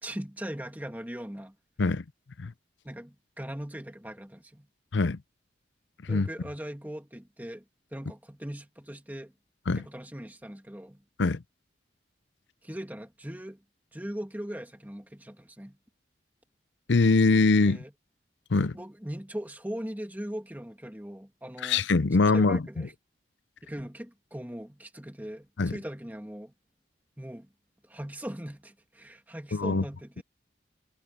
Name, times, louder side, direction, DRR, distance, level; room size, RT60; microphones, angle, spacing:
voice 1, 0.0-1.6 2.8-4.7 6.1-7.6 7.9-9.3 9.7-11.0 12.6-13.6 13.9-15.8 17.6-17.9 18.7-21.9 22.3-22.9 23.6-26.5 27.2-27.5 27.8-30.2, equal, 10° right, 2.1 m, -40 dB
voice 2, 16.9-17.8 18.5-18.8 21.6-22.6 25.6-25.7 29.5-29.8, left 3 dB, 90° left, 0.6 m, -23 dB
head